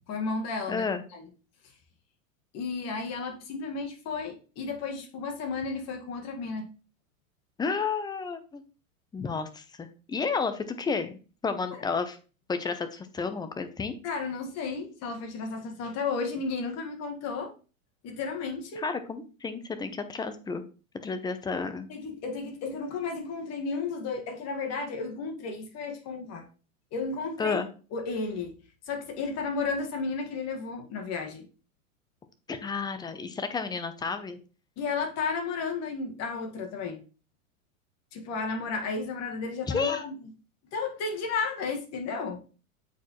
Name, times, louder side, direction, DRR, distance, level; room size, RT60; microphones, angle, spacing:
voice 1, 0.1-0.9 1.1-1.3 2.5-6.7 14.0-17.5 18.0-18.8 21.9-26.5 26.9-27.6 27.9-28.5 28.9-31.5 34.8-37.0 38.1-40.2 40.7-42.4, left 4 dB, 40° left, 1.7 m, -33 dB
voice 2, 0.7-1.0 7.6-8.6 9.1-12.2 12.5-13.9 18.8-20.6 21.0-21.9 27.4-27.7 32.5-34.4 39.7-40.0, left 5 dB, 10° left, 0.6 m, -31 dB
8.0 x 4.7 x 3.0 m
hypercardioid pair, 110°, 42 cm